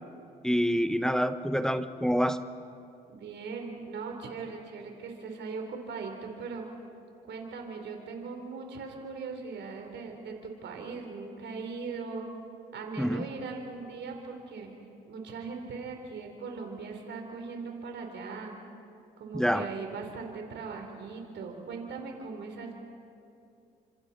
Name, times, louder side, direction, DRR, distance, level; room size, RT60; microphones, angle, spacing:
voice 1, 0.4-2.4 13.0-13.2 19.3-19.7, equal, 5° left, 10 dB, 1.1 m, -27 dB
voice 2, 3.1-6.7 7.2-12.3 12.7-14.7 15.1-18.6 19.2-22.7, right 4 dB, 60° right, 3 dB, 3.6 m, -39 dB
30.0 x 26.0 x 4.2 m, 2.6 s
hypercardioid pair, 55°, 20 cm